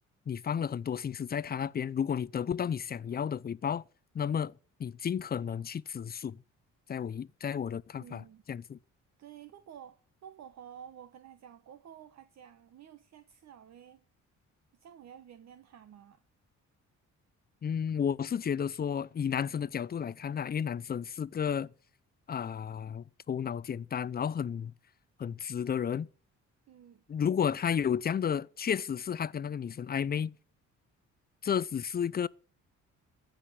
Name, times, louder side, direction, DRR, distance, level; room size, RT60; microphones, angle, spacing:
voice 1, 0.3-3.8 4.1-4.5 4.8-6.4 6.9-8.2 8.5-8.8 17.6-21.7 22.3-24.7 25.2-26.1 27.1-30.4 31.4-32.3, left 8 dB, 30° left, 0.5 m, -32 dB
voice 2, 8.0-8.4 9.2-14.0 14.7-16.2 26.7-27.0, right 9 dB, 60° right, 1.1 m, -51 dB
14.5 x 5.1 x 9.1 m
cardioid pair, 90°, 30 cm